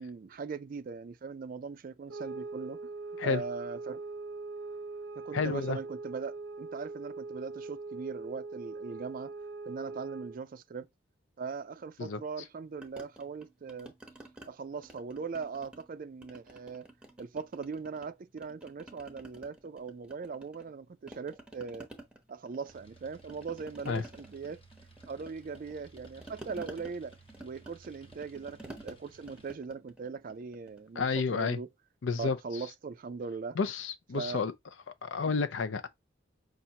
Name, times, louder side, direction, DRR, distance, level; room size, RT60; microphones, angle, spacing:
voice 1, 0.0-2.9 3.2-4.0 5.2-9.3 9.7-10.9 11.4-13.9 14.5-16.9 17.2-21.9 22.3-24.6 25.1-27.1 27.4-31.7 32.2-33.6 34.1-34.5, right 5 dB, 45° right, 0.3 m, -40 dB
sound 1, 2.1-10.4, right 3 dB, 90° right, 0.7 m, -41 dB
voice 2, 5.3-5.8 12.0-12.2 23.9-24.0 31.0-31.6 32.0-32.4 33.6-34.5 35.0-35.9, left 4 dB, 75° left, 0.5 m, -30 dB
sound 2, 12.8-14.5 14.8-15.9 16.2-18.1 18.4-20.8 21.1-30.9, right 1 dB, 5° right, 0.8 m, -51 dB
sound 3, 22.7-29.6, right 3 dB, 30° left, 0.8 m, -58 dB
5.6 x 2.4 x 2.8 m
head